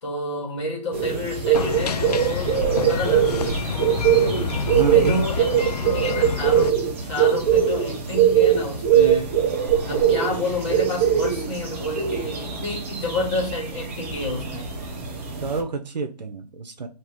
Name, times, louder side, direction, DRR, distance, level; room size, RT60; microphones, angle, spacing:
voice 1, 0.0-2.6 2.9-3.9 4.5-5.5 5.8-9.3 9.8-14.7, left 2 dB, 40° left, 1.7 m, -30 dB
sound 1, 0.9-15.6, right 8 dB, 20° right, 0.5 m, -22 dB
sound 2, 1.5-6.7, left 7 dB, 70° left, 0.4 m, -28 dB
voice 2, 4.2-5.2 15.4-16.9, right 5 dB, 85° right, 0.7 m, -29 dB
3.6 x 2.9 x 4.4 m
hypercardioid pair, 160°, 21 cm